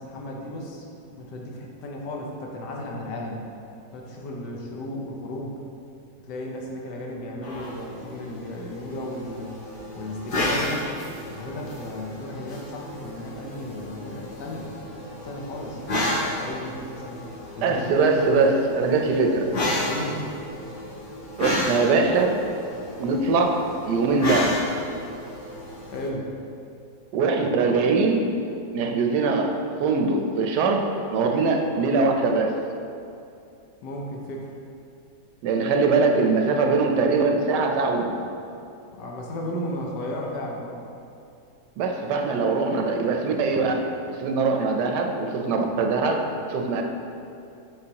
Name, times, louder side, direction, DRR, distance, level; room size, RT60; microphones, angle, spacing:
voice 1, 0.0-3.5 3.9-5.6 6.3-9.5 10.0-10.9 11.3-14.7 15.1-17.2 17.5-18.0 19.9-20.3 25.9-26.3 33.8-34.5 38.9-40.8, left 1 dB, 80° left, -1 dB, 1.4 m, -34 dB
sound 1, 7.4-26.1, left 1 dB, 45° left, 0.7 m, -32 dB
voice 2, 17.6-19.5 21.4-22.4 23.0-24.6 27.1-28.3 28.7-29.5 29.8-32.5 35.4-38.0 41.8-43.7 44.0-46.8, right 4 dB, 80° right, 3 dB, 1.2 m, -22 dB
7.8 x 5.3 x 2.9 m, 2.6 s
omnidirectional pair, 1.8 m